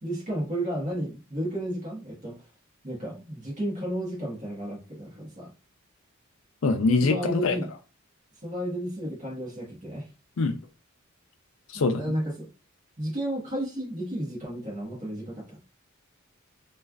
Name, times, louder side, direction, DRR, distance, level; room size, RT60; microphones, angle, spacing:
voice 1, 0.0-2.4 2.8-5.5 7.0-7.7 8.4-10.1 11.9-12.5 13.0-15.6, right 1 dB, 40° right, 1.2 m, -32 dB
voice 2, 6.6-7.6 10.4-10.6 11.7-12.0, left 3 dB, 75° left, 0.4 m, -23 dB
3.2 x 2.3 x 2.3 m
head